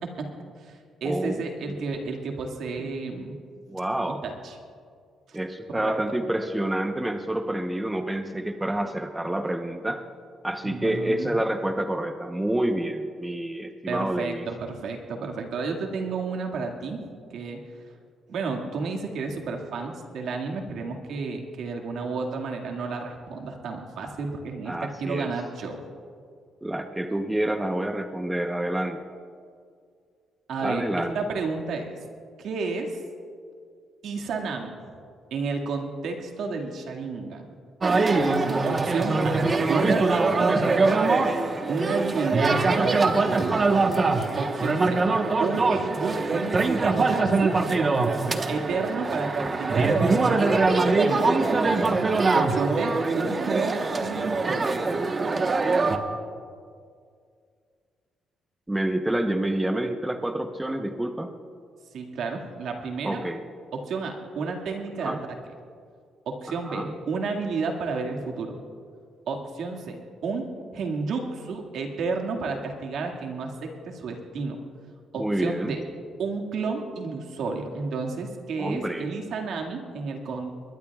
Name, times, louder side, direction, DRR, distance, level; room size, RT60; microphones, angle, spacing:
voice 1, 0.0-3.4 4.1-4.6 5.3-5.4 5.7-5.9 10.6-11.4 13.9-17.0 17.3-17.6 18.3-25.8 30.5-32.0 32.4-32.9 34.0-34.7 35.3-37.5 38.6-39.4 39.7-41.0 41.7-43.7 44.4-45.1 45.4-47.6 48.5-51.2 52.3-54.8 61.9-63.2 63.7-65.4 66.3-68.6 69.3-70.5 70.7-74.6 75.1-75.8 76.2-80.5, right 4 dB, 75° right, 1 dB, 2.0 m, -31 dB
voice 2, 1.0-1.8 2.8-2.9 3.7-4.2 5.3-10.0 10.4-14.5 24.7-25.3 26.6-29.0 30.6-31.2 58.7-61.3 63.0-63.4 65.0-65.2 66.6-66.9 75.1-75.8 78.6-79.1, right 1 dB, 10° right, 6 dB, 0.8 m, -28 dB
sound 1, 37.8-56.0, right 3 dB, 35° right, 1.1 m, -23 dB
21.0 x 21.0 x 2.4 m, 2.2 s
cardioid pair, 90°, 0 cm